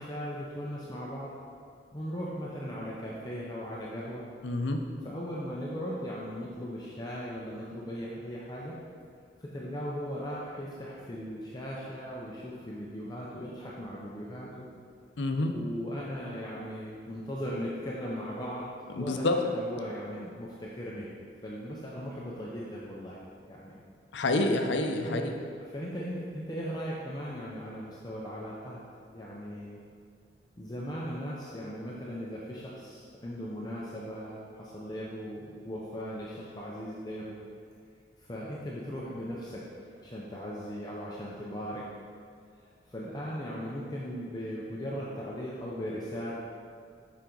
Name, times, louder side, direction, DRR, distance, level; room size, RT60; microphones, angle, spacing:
voice 1, 0.0-1.3 1.9-4.2 5.0-8.7 9.4-14.7 15.5-19.3 19.5-21.1 21.4-23.2 23.5-23.7 25.0-25.3 25.7-28.8 29.1-29.8 30.6-37.4 38.2-41.8 42.9-46.3, equal, 20° left, -5 dB, 0.6 m, -38 dB
voice 2, 4.4-4.8 15.2-15.6 18.9-19.4 24.1-25.3, left 2 dB, 70° left, 5 dB, 0.6 m, -28 dB
7.1 x 5.1 x 3.8 m, 2.3 s
head